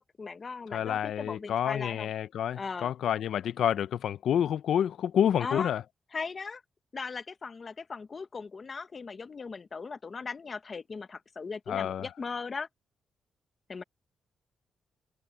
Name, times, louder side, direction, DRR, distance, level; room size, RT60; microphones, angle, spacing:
voice 1, 0.0-2.1 2.6-2.9 5.4-5.7 6.1-6.6 6.9-12.7 13.7-13.8, left 4 dB, 35° left, 0.9 m, -38 dB
voice 2, 0.7-5.8 11.7-12.1, left 9 dB, 75° left, 0.6 m, -28 dB
cardioid pair, 125°, 0 cm